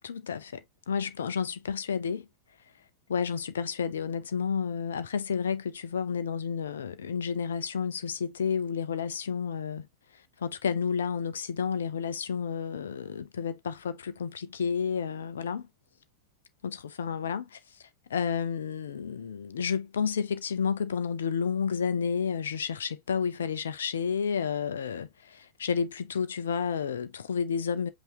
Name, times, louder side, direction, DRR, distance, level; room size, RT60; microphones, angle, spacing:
voice 1, 0.0-2.3 3.1-9.9 10.4-15.7 16.6-27.9, left 6 dB, 65° left, 0.5 m, -31 dB
5.4 x 2.6 x 3.4 m
figure-of-eight pair, 90°, 0 cm